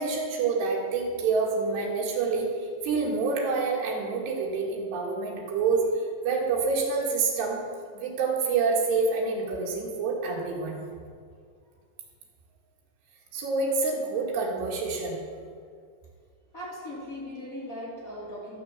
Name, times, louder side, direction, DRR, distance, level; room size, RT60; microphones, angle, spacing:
voice 1, 0.0-2.5 2.8-5.8 6.2-7.6 7.9-10.8 13.3-15.2, right 4 dB, 75° right, -2 dB, 4.0 m, -27 dB
voice 2, 16.5-18.6, left 1 dB, 25° left, -6 dB, 2.3 m, -38 dB
12.5 x 6.5 x 7.2 m, 2.1 s
omnidirectional pair, 4.9 m